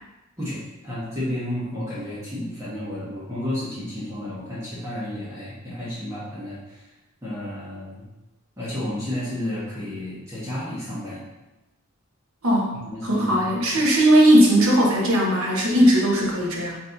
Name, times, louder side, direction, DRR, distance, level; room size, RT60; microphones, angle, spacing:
voice 1, 0.4-6.9 7.2-8.1 8.6-11.2 12.8-13.6, left 1 dB, 15° right, -11 dB, 1.3 m, -32 dB
voice 2, 12.4-12.8 13.0-16.8, equal, 85° right, -2 dB, 1.1 m, -18 dB
4.2 x 3.1 x 3.9 m, 1.0 s
head